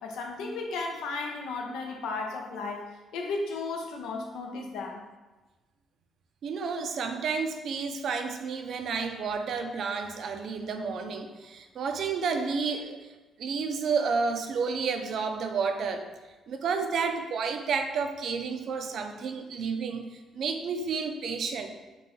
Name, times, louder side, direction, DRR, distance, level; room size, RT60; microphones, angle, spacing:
voice 1, 0.0-5.0, left 3 dB, 90° left, 2 dB, 0.6 m, -34 dB
voice 2, 6.4-13.1 13.4-16.1 16.5-20.0 20.3-21.7, right 5 dB, 65° right, 6 dB, 0.4 m, -31 dB
5.1 x 2.3 x 3.0 m, 1.2 s
cardioid pair, 90°, 0 cm